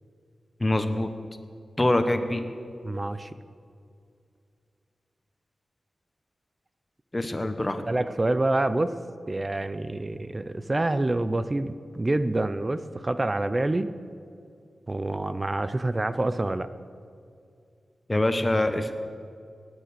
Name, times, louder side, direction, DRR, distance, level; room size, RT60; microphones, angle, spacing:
voice 1, 0.6-1.1 1.8-2.5 7.1-7.8 18.1-18.9, left 1 dB, 20° left, 8 dB, 1.1 m, -24 dB
voice 2, 2.8-3.3 7.9-9.0 9.3-13.9 14.9-16.7, right 2 dB, 25° right, 12 dB, 0.5 m, -27 dB
18.5 x 9.3 x 6.7 m, 2.3 s
wide cardioid pair, 100°, 0 cm